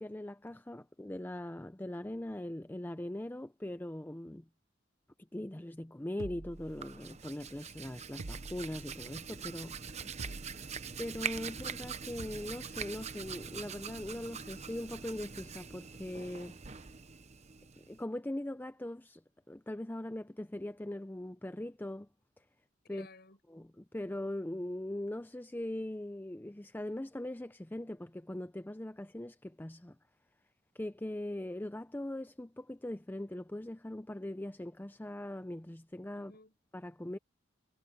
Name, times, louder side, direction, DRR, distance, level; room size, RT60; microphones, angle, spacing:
voice 1, 0.0-4.4 5.3-9.8 11.0-16.6 17.8-19.2 19.5-22.1 22.9-23.1 23.5-30.0 30.7-36.3 36.7-37.2, left 1 dB, 10° left, 0.5 m, -41 dB
sound 1, 6.2-7.3 8.2-9.1 10.2-10.9 12.2-12.7, right 2 dB, 85° right, 1.1 m, -47 dB
Hands, 6.6-18.0, right 6 dB, 35° right, 0.8 m, -43 dB
voice 2, 9.9-10.7 22.8-23.4 36.1-36.5, left 2 dB, 55° left, 7.8 m, -58 dB
head